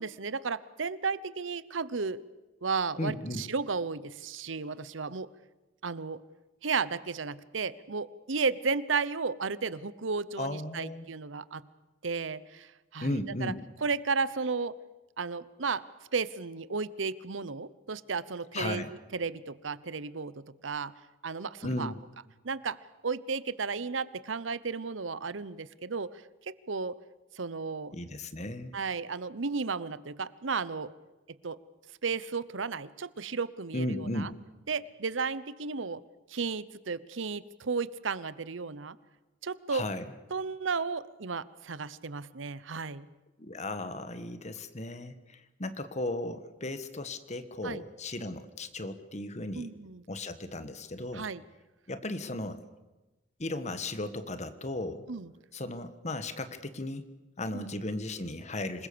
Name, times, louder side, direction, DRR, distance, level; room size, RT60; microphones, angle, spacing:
voice 1, 0.0-2.2 2.6-5.3 5.8-6.2 6.6-11.6 12.0-13.5 13.8-14.8 15.2-15.8 16.1-18.8 19.1-20.9 21.2-21.9 22.4-22.8 23.0-26.1 26.5-27.0 27.3-27.9 28.7-30.9 31.4-31.6 32.0-34.3 34.7-36.0 36.3-39.0 39.4-39.8 40.3-43.1 47.6-47.8 49.6-50.0 51.1-51.4 55.1-55.3 57.5-57.7, right 4 dB, 85° right, 17 dB, 0.9 m, -33 dB
voice 2, 3.0-3.5 10.4-11.0 13.0-13.6 18.5-18.9 21.6-22.0 27.9-28.7 33.7-34.3 39.7-40.0 43.4-49.7 50.1-51.2 51.9-52.6 53.4-55.0 55.5-57.0 57.4-58.9, left 2 dB, 35° left, 11 dB, 1.5 m, -35 dB
26.5 x 21.0 x 6.9 m, 1.1 s
head